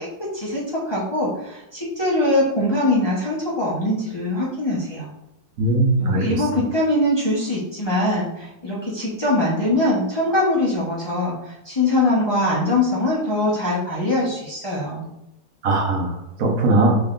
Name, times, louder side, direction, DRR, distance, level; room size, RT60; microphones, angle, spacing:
voice 1, 0.0-5.1 6.0-15.1, left 1 dB, 30° left, -7 dB, 0.4 m, -22 dB
voice 2, 5.6-6.2 15.6-17.0, right 2 dB, 55° right, 0 dB, 1.1 m, -19 dB
5.2 x 3.6 x 2.5 m, 0.88 s
omnidirectional pair, 2.0 m